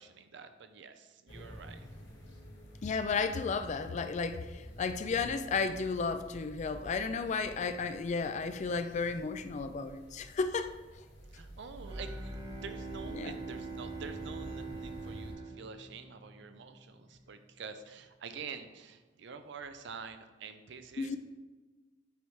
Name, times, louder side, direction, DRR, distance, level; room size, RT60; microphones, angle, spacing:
voice 1, 0.0-1.8 11.3-21.2, right 5 dB, 65° right, 9 dB, 0.5 m, -47 dB
sound 1, 1.3-15.3, equal, 85° left, 2.0 m, -49 dB
voice 2, 2.8-10.7 13.1-13.4 21.0-21.2, left 4 dB, 40° left, 10 dB, 0.4 m, -33 dB
Bowed string instrument, 11.7-16.6, right 4 dB, 20° right, 0.6 m, -44 dB
7.8 x 3.3 x 4.8 m, 1.2 s
head